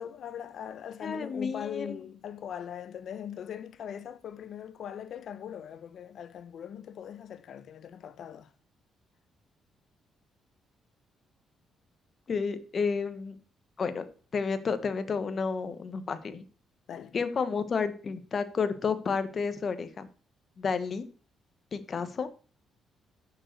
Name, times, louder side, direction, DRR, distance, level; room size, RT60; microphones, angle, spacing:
voice 1, 0.0-8.5 16.9-17.1, left 9 dB, 65° left, 1.0 m, -40 dB
voice 2, 1.0-2.0 12.3-13.4 13.8-14.0 14.3-16.4 17.1-20.1 20.6-21.0 21.7-22.3, left 5 dB, 45° left, 1.4 m, -31 dB
8.8 x 6.6 x 6.7 m
cardioid pair, 90°, 0 cm